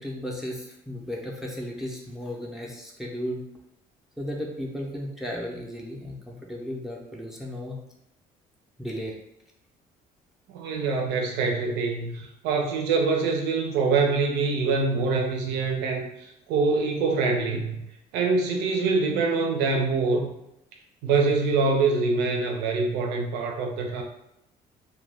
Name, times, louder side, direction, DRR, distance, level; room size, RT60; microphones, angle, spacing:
voice 1, 0.0-3.4 4.2-7.8 8.8-9.2, equal, ahead, -1 dB, 0.5 m, -35 dB
voice 2, 10.5-17.8 18.1-20.3 21.0-24.0, right 4 dB, 90° right, 1 dB, 0.5 m, -25 dB
2.2 x 2.2 x 3.2 m, 0.85 s
cardioid pair, 110°, 17 cm